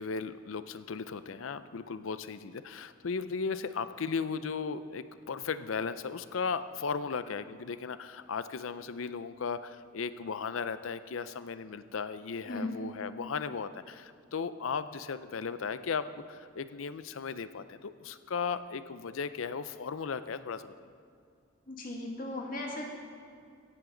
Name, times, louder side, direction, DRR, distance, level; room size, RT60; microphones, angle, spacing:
voice 1, 0.0-20.7, left 5 dB, 80° left, 13 dB, 0.5 m, -36 dB
voice 2, 21.7-22.8, left 2 dB, 45° left, 0 dB, 2.0 m, -37 dB
16.5 x 11.0 x 3.9 m, 2.4 s
head